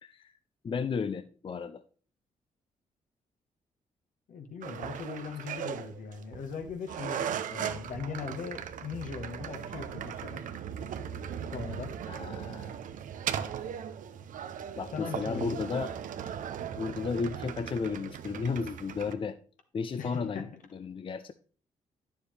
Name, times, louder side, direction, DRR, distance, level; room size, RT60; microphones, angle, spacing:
voice 1, 0.0-0.3 0.6-1.8 12.1-12.8 14.8-15.9 16.8-19.4 19.7-21.3, left 5 dB, 40° left, 11 dB, 0.5 m, -34 dB
voice 2, 4.3-7.2 7.5-10.4 11.5-11.9 14.9-15.7 20.0-20.5, left 5 dB, 65° left, 5 dB, 1.3 m, -39 dB
sound 1, 4.6-19.1, right 8 dB, 70° right, 0.6 m, -38 dB
9.6 x 7.0 x 3.3 m, 0.43 s
supercardioid pair, 50°, 14 cm